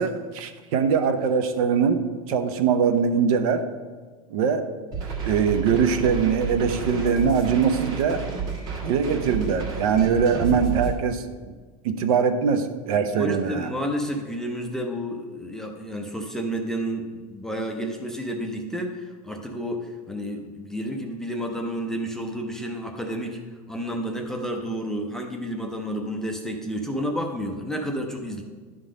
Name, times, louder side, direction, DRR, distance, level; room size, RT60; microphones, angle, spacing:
voice 1, 0.0-2.0 2.3-3.6 4.3-4.7 5.2-8.2 8.8-11.2 11.8-13.7, right 6 dB, 65° right, 8 dB, 0.8 m, -22 dB
sound 1, 4.9-10.9, right 5 dB, 45° right, 1.6 m, -31 dB
voice 2, 13.1-23.4 23.7-28.4, equal, 5° left, 1 dB, 0.5 m, -30 dB
11.0 x 3.8 x 5.0 m, 1.5 s
supercardioid pair, 160°, 20 cm